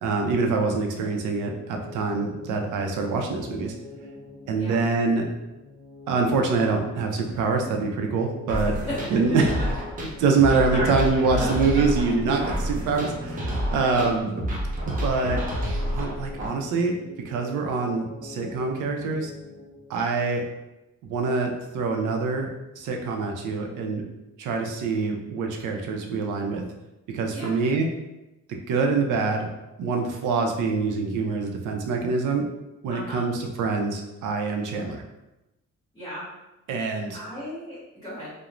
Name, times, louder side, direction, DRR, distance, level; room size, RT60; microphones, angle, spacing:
voice 1, 0.0-3.7 4.5-5.3 6.1-8.8 9.1-9.5 10.2-14.3 14.9-15.4 15.9-17.0 17.2-19.3 19.9-20.4 21.0-22.5 22.8-24.0 24.4-26.6 27.1-27.9 28.7-29.5 29.8-32.4 32.8-35.0 36.7-37.2, right 4 dB, 90° right, 2 dB, 0.5 m, -25 dB
sound 1, 1.3-20.1, left 3 dB, 50° left, 0.9 m, -44 dB
sound 2, 8.5-16.5, equal, 30° right, 0.4 m, -29 dB
voice 2, 8.7-9.4 10.7-11.0 11.4-11.5 11.7-11.8 13.7-14.0 27.3-27.5 32.9-33.2 35.9-36.2 37.1-38.3, equal, 15° left, -14 dB, 0.8 m, -35 dB
3.0 x 2.1 x 2.4 m, 0.97 s
cardioid pair, 170°, 30 cm